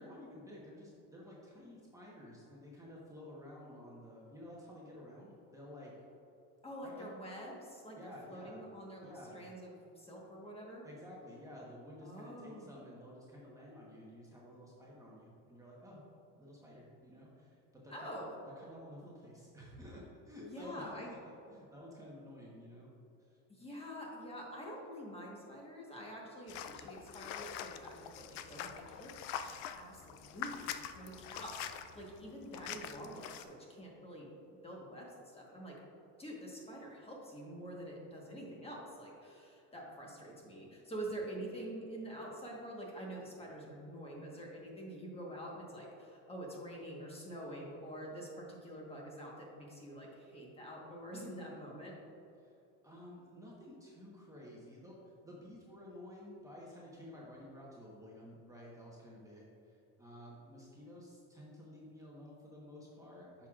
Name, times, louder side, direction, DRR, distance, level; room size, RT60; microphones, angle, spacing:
voice 1, 0.0-5.9 6.8-7.1 7.9-8.6 9.0-9.4 10.8-16.0 16.4-21.2 21.5-22.9 23.2-23.4 52.4-52.5 52.8-63.5, left 1 dB, 10° right, -5 dB, 1.1 m, -52 dB
voice 2, 6.6-10.8 12.0-12.7 17.9-18.3 20.4-21.1 23.5-34.3 34.6-35.8 36.2-51.9, right 1 dB, 15° left, -2 dB, 1.3 m, -47 dB
sound 1, 26.5-33.4, left 9 dB, 75° left, 0.5 m, -45 dB
9.4 x 5.8 x 2.4 m, 2.7 s
supercardioid pair, 120°, 36 cm